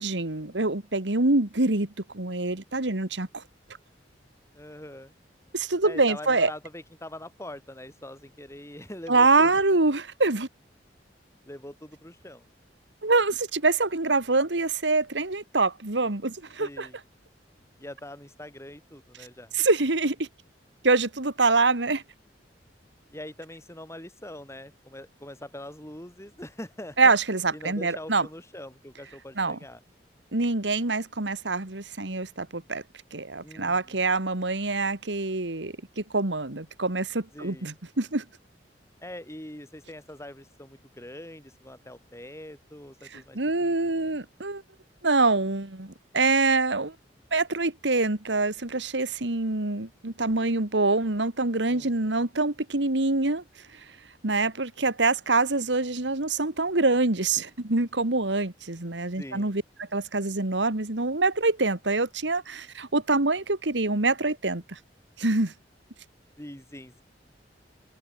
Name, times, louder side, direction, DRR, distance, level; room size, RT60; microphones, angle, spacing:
voice 1, 0.0-1.9 2.1-3.4 5.5-6.5 9.1-10.5 13.0-16.9 19.5-20.3 20.8-22.0 27.0-28.3 29.4-29.6 30.3-32.8 33.1-38.2 43.1-44.6 45.0-46.9 47.3-53.4 54.2-59.6 59.9-64.8 65.2-65.5, right 3 dB, 80° right, 2.1 m, -25 dB
voice 2, 4.5-5.1 5.8-9.6 11.5-12.5 16.6-17.0 17.8-19.5 23.1-27.1 27.5-29.8 33.4-34.0 37.3-37.7 39.0-44.2 51.7-52.2 59.2-59.5 66.4-67.0, left 1 dB, 15° left, 7.1 m, -43 dB
head